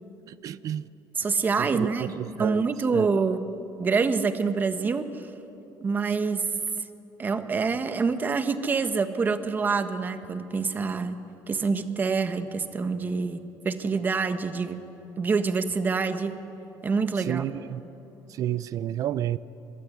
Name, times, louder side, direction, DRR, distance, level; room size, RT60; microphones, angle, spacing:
voice 1, 0.3-0.8 1.6-2.6 2.9-3.1 17.3-17.8 18.3-19.4, right 11 dB, 50° right, 17 dB, 0.7 m, -30 dB
voice 2, 1.1-3.5 3.8-5.3 5.8-6.5 7.2-11.2 11.5-14.8 15.2-16.4 16.8-17.4, right 4 dB, 25° right, 9 dB, 1.4 m, -26 dB
25.5 x 22.0 x 9.8 m, 3.0 s
cardioid pair, 145°, 7 cm